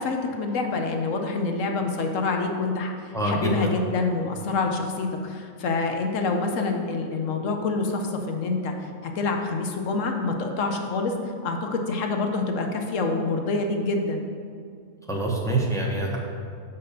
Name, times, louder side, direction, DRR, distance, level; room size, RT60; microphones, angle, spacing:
voice 1, 0.0-14.2, left 3 dB, 70° left, 4 dB, 1.1 m, -27 dB
voice 2, 3.1-3.5 15.1-16.2, right 2 dB, 5° left, -3 dB, 0.9 m, -25 dB
5.7 x 5.4 x 6.5 m, 2.3 s
omnidirectional pair, 1.4 m